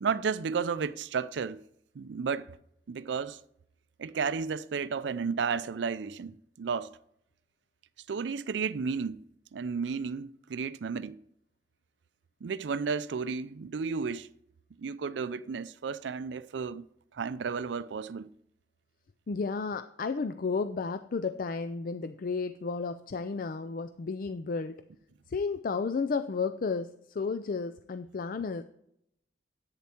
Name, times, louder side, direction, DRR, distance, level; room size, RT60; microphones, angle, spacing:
voice 1, 0.0-1.6 2.0-2.6 2.9-3.4 4.0-7.0 8.1-9.3 9.5-11.2 12.4-14.3 14.8-16.9 17.1-18.3, right 5 dB, 80° right, 0.4 m, -33 dB
voice 2, 19.3-24.8 25.3-28.6, left 4 dB, 50° left, 0.4 m, -32 dB
10.5 x 8.7 x 4.4 m
head